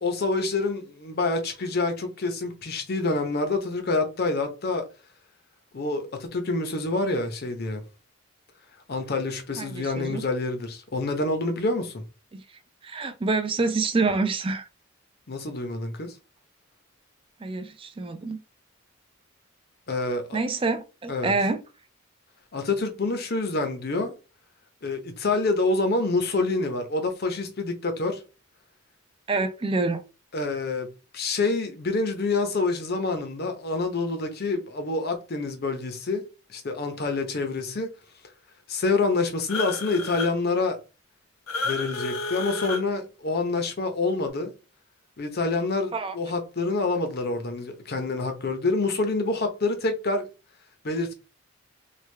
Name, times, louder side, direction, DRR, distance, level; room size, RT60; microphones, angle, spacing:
voice 1, 0.0-4.8 5.7-7.8 8.9-12.0 15.3-16.1 19.9-20.4 21.1-21.3 22.5-24.1 24.8-28.2 30.3-36.2 36.5-37.9 38.7-40.8 41.6-44.5 45.2-50.3 50.8-51.1, left 3 dB, 50° left, 0.7 m, -27 dB
voice 2, 9.6-10.2 12.3-12.4 12.8-14.7 17.4-18.4 20.3-21.6 29.3-30.0 45.9-46.1, right 3 dB, 25° right, 0.4 m, -27 dB
sound 1, 39.5-40.3 41.5-42.8, left 3 dB, 85° left, 0.7 m, -31 dB
3.3 x 2.3 x 3.2 m
head